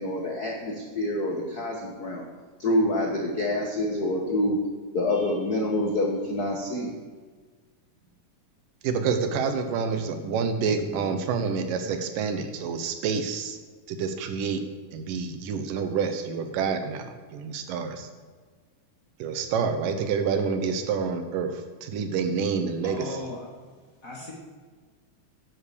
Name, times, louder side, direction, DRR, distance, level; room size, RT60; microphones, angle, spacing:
voice 1, 0.0-2.2 2.6-4.6 4.9-6.9, left 1 dB, 65° left, 0 dB, 0.9 m, -27 dB
voice 2, 8.8-13.6 13.9-14.6 14.9-18.1 19.2-23.3, right 5 dB, 85° right, 8 dB, 2.6 m, -28 dB
voice 3, 22.8-23.5 24.0-24.3, left 2 dB, 30° left, -3 dB, 2.0 m, -37 dB
10.5 x 7.9 x 6.8 m, 1.5 s
omnidirectional pair, 3.8 m